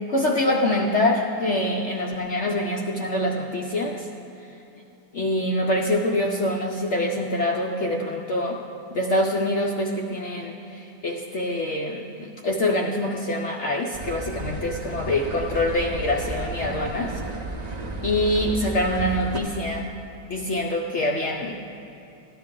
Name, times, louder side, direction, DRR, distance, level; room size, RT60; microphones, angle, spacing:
voice 1, 0.1-4.1 5.1-8.6 8.9-17.2 18.0-20.0 20.3-21.7, left 1 dB, 65° left, 0 dB, 0.7 m, -25 dB
sound 1, 13.9-19.4, right 2 dB, 70° right, 0.3 m, -33 dB
14.0 x 10.0 x 3.7 m, 2.9 s
omnidirectional pair, 1.9 m